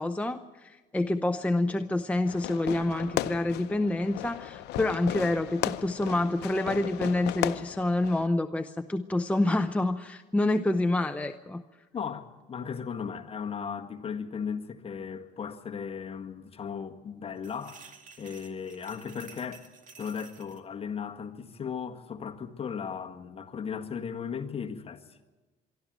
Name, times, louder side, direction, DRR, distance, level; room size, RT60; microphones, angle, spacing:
voice 1, 0.0-11.6, left 2 dB, 10° left, 0.6 m, -27 dB
Fireworks, 2.2-8.3, left 14 dB, 80° left, 0.7 m, -35 dB
voice 2, 11.9-19.7 20.0-25.3, left 6 dB, 35° left, 1.7 m, -36 dB
sound 1, 17.4-20.6, right 6 dB, 50° right, 2.4 m, -52 dB
23.5 x 13.0 x 9.2 m
cardioid pair, 110°, 17 cm